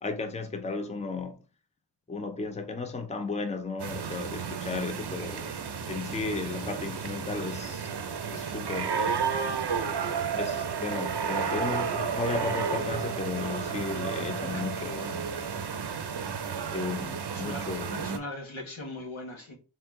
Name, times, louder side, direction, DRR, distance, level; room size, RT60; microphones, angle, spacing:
voice 1, 0.0-1.4 2.1-5.5 5.9-7.9 8.3-9.4 10.4-15.3 16.7-18.0, left 3 dB, 15° left, 0.6 m, -34 dB
sound 1, 3.8-18.2, right 6 dB, 55° right, 0.7 m, -32 dB
voice 2, 17.3-17.6 18.0-19.6, left 2 dB, 80° left, 1.3 m, -39 dB
3.6 x 2.8 x 3.5 m
wide cardioid pair, 60°, 47 cm